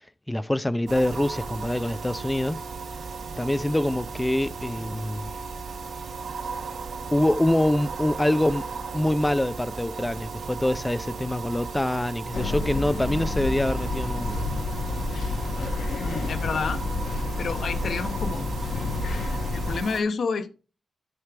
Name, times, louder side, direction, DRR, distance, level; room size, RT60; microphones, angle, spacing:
voice 1, 0.3-2.6 3.4-5.3 7.1-8.7 8.9-14.4, left 1 dB, 10° left, 0.3 m, -25 dB
sound 1, 0.9-20.0, right 4 dB, 85° right, 2.6 m, -36 dB
sound 2, 12.3-19.8, left 3 dB, 85° left, 1.2 m, -29 dB
voice 2, 16.0-16.8 17.4-18.5 19.5-20.5, left 5 dB, 60° left, 0.6 m, -29 dB
13.0 x 5.6 x 3.3 m
wide cardioid pair, 155°, 0 cm